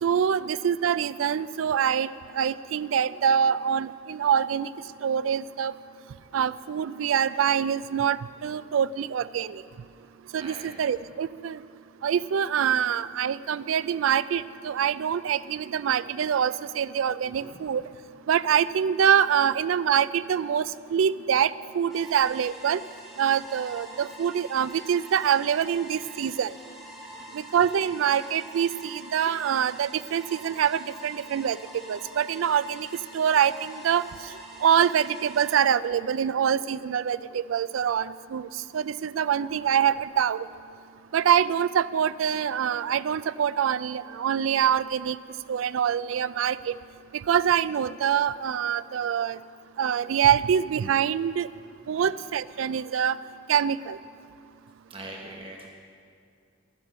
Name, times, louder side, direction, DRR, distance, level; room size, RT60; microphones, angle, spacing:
voice 1, 0.0-2.1 2.4-4.7 5.0-5.7 6.3-9.6 10.3-11.6 12.0-17.8 18.3-20.6 20.9-22.8 23.2-26.5 27.5-31.6 31.9-32.9 33.1-34.0 34.6-38.5 38.7-40.4 41.1-45.2 45.5-46.7 47.3-49.4 49.8-51.5 51.9-53.2 53.5-54.0, right 8 dB, 90° right, 16 dB, 0.4 m, -25 dB
voice 2, 10.4-10.8 17.4-17.6 27.1-27.5 51.8-52.1 54.9-55.7, right 1 dB, 30° right, 0 dB, 1.0 m, -43 dB
sound 1, 21.9-35.6, equal, ahead, 1.9 m, -45 dB
12.0 x 9.6 x 6.3 m, 2.4 s
head